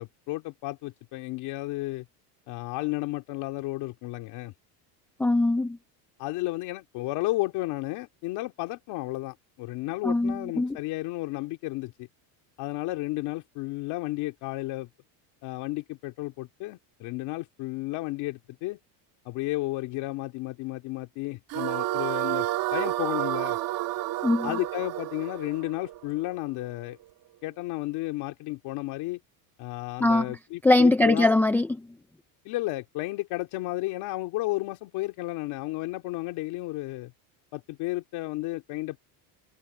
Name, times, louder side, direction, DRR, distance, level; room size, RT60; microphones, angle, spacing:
voice 1, 0.0-2.0 2.5-4.5 6.2-12.1 12.6-14.9 15.4-18.8 19.2-23.6 24.4-27.0 27.4-29.2 29.6-31.3 32.4-37.1 37.5-39.0, left 19 dB, 55° left, 2.5 m, -33 dB
voice 2, 5.2-5.8 10.0-10.8 24.2-24.6 30.0-30.4 30.6-31.9, left 2 dB, 5° left, 0.5 m, -22 dB
sound 1, 21.5-26.7, right 16 dB, 45° right, 2.0 m, -30 dB
cardioid pair, 160°, 47 cm